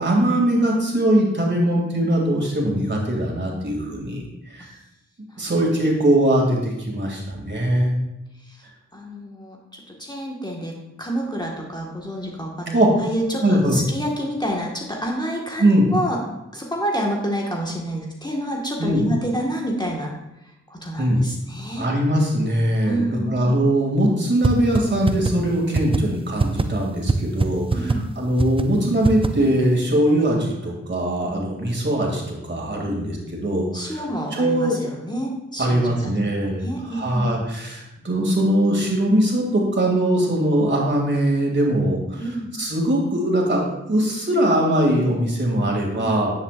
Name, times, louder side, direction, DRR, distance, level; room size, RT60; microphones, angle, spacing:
voice 1, 0.0-4.2 4.5-4.7 5.4-7.9 12.7-12.9 13.4-13.8 15.6-15.9 18.8-19.1 21.0-21.2 21.8-34.0 34.3-34.8 35.6-42.2 42.6-46.3, right 1 dB, 40° right, -1 dB, 2.7 m, -21 dB
voice 2, 8.4-16.2 16.5-20.2 20.7-21.9 22.8-23.5 27.7-28.0 32.8-33.0 33.7-36.1 36.4-37.4 42.2-42.5 45.9-46.1, equal, 15° left, -2 dB, 1.7 m, -28 dB
sound 1, 24.4-24.5 24.8-24.9 25.1-25.3 25.7-26.0 26.4-26.6 27.1-27.2 27.4-27.5 27.7-28.0 28.4-28.6 29.0-29.3, right 3 dB, 20° right, 0.6 m, -19 dB
10.0 x 7.4 x 2.6 m, 0.92 s
cardioid pair, 40°, 29 cm